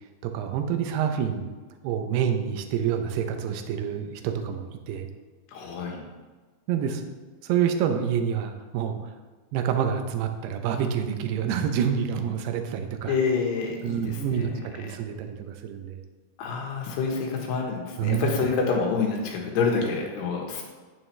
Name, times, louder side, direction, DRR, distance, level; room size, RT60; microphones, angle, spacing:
voice 1, 0.2-1.5 1.8-5.1 6.7-7.0 7.4-9.1 9.5-13.1 13.8-16.0 18.0-18.3, right 8 dB, 80° right, 6 dB, 2.8 m, -27 dB
voice 2, 5.5-6.0 13.1-14.5 16.4-20.6, left 5 dB, 80° left, 1 dB, 3.4 m, -27 dB
9.1 x 8.7 x 3.3 m, 1.4 s
omnidirectional pair, 4.7 m